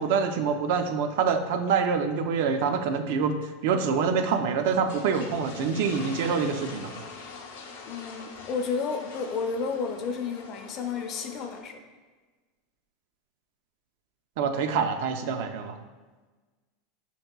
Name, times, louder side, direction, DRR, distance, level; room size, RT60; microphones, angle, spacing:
voice 1, 0.0-3.4 3.6-7.0 14.4-15.8, right 6 dB, 65° right, 7 dB, 0.3 m, -26 dB
sound 1, 4.6-11.6, left 4 dB, 90° left, 0.5 m, -43 dB
voice 2, 7.8-11.8, left 5 dB, 40° left, 5 dB, 0.4 m, -31 dB
5.3 x 2.8 x 2.2 m, 1.3 s
supercardioid pair, 135°, 0 cm